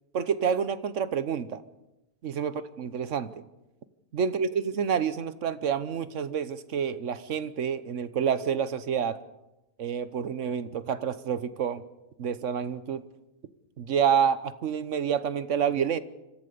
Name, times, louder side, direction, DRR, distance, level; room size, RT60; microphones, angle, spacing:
voice 1, 0.1-1.6 2.2-3.3 4.1-9.2 9.8-11.8 12.2-13.0 13.8-16.0, right 7 dB, 60° right, 14 dB, 1.2 m, -28 dB
25.5 x 15.0 x 6.9 m, 0.96 s
omnidirectional pair, 1.5 m